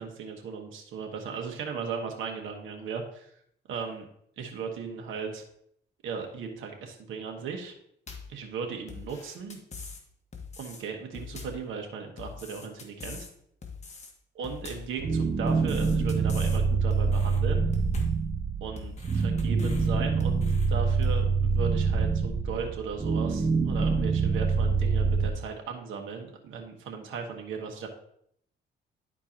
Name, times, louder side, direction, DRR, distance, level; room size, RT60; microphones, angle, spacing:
voice 1, 0.0-3.3 3.7-4.0 4.4-5.4 6.0-7.7 8.3-9.6 10.6-13.3 14.3-17.6 18.6-27.9, right 5 dB, 80° right, 3 dB, 1.4 m, -37 dB
sound 1, 8.1-8.4 8.9-10.0 10.3-10.8 11.1-11.7 12.2-13.3 13.6-14.1 14.4-15.0 15.5-16.6 16.9-17.4 17.7-18.2 18.8-19.9 20.2-20.7 21.0-21.2, left 5 dB, 35° left, 1.5 m, -43 dB
sound 2, 15.0-25.3, right 4 dB, 25° right, 0.6 m, -26 dB
11.5 x 4.5 x 2.9 m, 0.70 s
cardioid pair, 90°, 20 cm